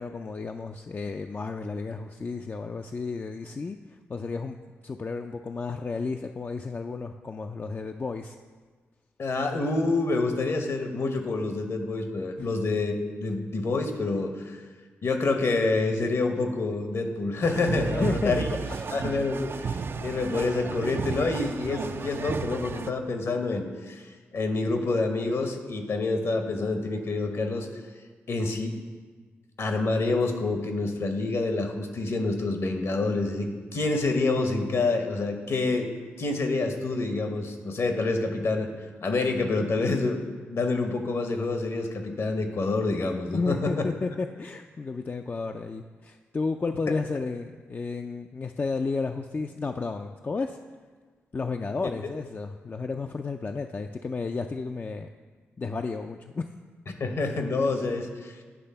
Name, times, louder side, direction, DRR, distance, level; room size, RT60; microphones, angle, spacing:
voice 1, 0.0-3.8 4.1-4.6 4.8-8.4 12.4-12.5 17.9-18.3 18.6-18.9 43.3-50.6 51.3-55.1 55.6-56.5, left 4 dB, 35° left, 5 dB, 0.3 m, -32 dB
voice 2, 9.2-14.6 15.0-18.5 18.9-27.7 28.3-28.7 29.6-35.9 36.2-38.7 39.0-40.2 40.5-43.9 57.0-58.4, left 3 dB, 60° left, 5 dB, 1.0 m, -27 dB
sound 1, 17.4-22.9, right 5 dB, 45° right, 0.3 m, -33 dB
9.7 x 3.4 x 5.5 m, 1.4 s
supercardioid pair, 45°, 5 cm